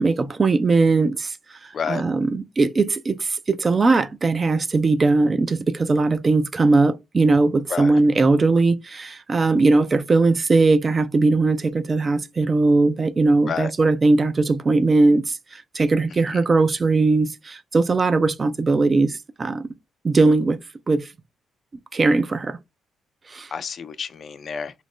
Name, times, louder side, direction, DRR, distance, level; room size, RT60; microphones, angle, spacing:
voice 1, 0.0-1.4 1.6-19.7 20.0-20.6 20.9-21.1 21.9-22.6 23.3-23.5, right 3 dB, 35° right, 0.4 m, -19 dB
voice 2, 23.5-24.7, left 6 dB, 50° left, 0.3 m, -29 dB
3.0 x 2.5 x 3.5 m
cardioid pair, 90°, 0 cm